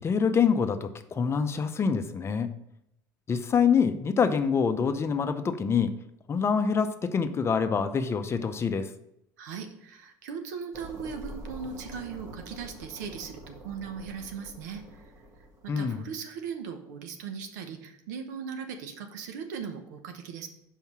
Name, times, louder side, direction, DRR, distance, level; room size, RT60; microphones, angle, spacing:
voice 1, 0.0-2.5 3.3-5.9 6.3-8.9 15.7-16.0, left 6 dB, 30° left, 9 dB, 0.6 m, -26 dB
voice 2, 9.4-15.1 15.6-20.5, right 6 dB, 85° right, 6 dB, 0.9 m, -38 dB
sound 1, 10.7-16.0, right 1 dB, 40° right, 1.5 m, -45 dB
5.4 x 4.7 x 5.9 m, 0.79 s
supercardioid pair, 95°, 9 cm